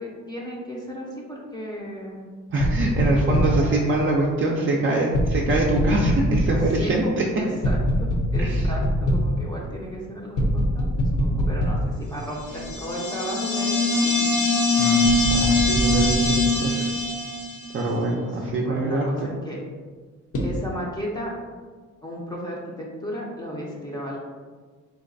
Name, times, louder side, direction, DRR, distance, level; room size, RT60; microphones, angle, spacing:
voice 1, 0.0-2.2 3.3-3.9 6.8-14.3 18.3-19.6 20.4-21.3 22.0-24.2, equal, 15° left, -4 dB, 0.5 m, -34 dB
voice 2, 2.5-7.2 8.4-8.7 14.8-16.9 17.7-19.3, right 2 dB, 45° right, -2 dB, 0.5 m, -24 dB
sound 1, 2.6-3.7 5.1-6.9 7.6-9.4 10.4-12.0 12.6-12.7 15.0-16.4 20.3-20.5, equal, 50° left, 0.7 m, -23 dB
sound 2, 12.4-17.8, left 2 dB, 70° left, 1.0 m, -22 dB
4.0 x 2.2 x 2.5 m, 1.5 s
cardioid pair, 90°, 30 cm